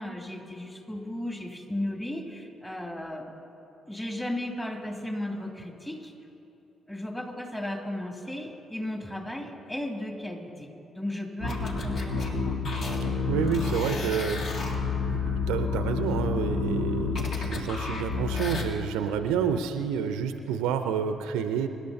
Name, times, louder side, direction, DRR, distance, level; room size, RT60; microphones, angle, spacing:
voice 1, 0.0-3.3 3.9-6.1 6.9-12.6, left 1 dB, 15° left, 1 dB, 2.8 m, -35 dB
sound 1, 11.4-18.6, left 4 dB, 55° left, 1.9 m, -29 dB
voice 2, 13.3-14.6 15.0-21.7, right 7 dB, 75° right, 9 dB, 0.6 m, -29 dB
25.0 x 11.5 x 2.8 m, 3.0 s
hypercardioid pair, 40°, 0 cm